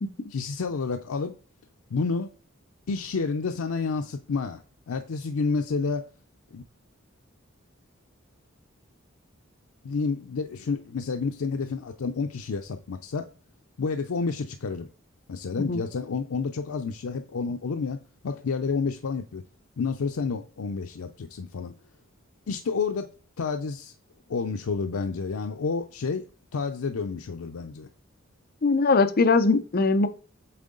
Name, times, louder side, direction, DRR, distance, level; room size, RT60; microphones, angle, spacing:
voice 1, 0.3-1.4 1.9-2.3 2.9-6.0 6.5-6.6 9.8-13.3 13.8-14.9 15.3-19.4 19.8-21.7 22.5-23.1 23.4-23.9 24.3-26.3 26.5-27.9, left 4 dB, 90° left, 0.5 m, -30 dB
voice 2, 28.6-30.1, left 3 dB, 45° left, 0.6 m, -21 dB
7.6 x 3.7 x 3.8 m
head